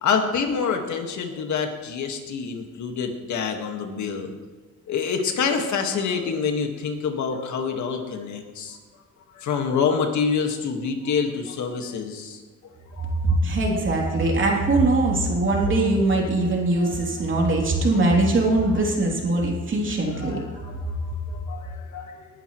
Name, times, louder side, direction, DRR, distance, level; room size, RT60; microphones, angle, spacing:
voice 1, 0.0-4.3 4.9-8.8 9.3-12.4 12.9-13.4 13.9-14.3 16.8-16.9 17.9-18.0 20.0-22.3, left 6 dB, 70° left, 4 dB, 1.9 m, -27 dB
voice 2, 13.2-20.4, right 2 dB, 40° right, -1 dB, 3.3 m, -21 dB
19.5 x 11.0 x 3.2 m, 1.3 s
cardioid pair, 90°, 30 cm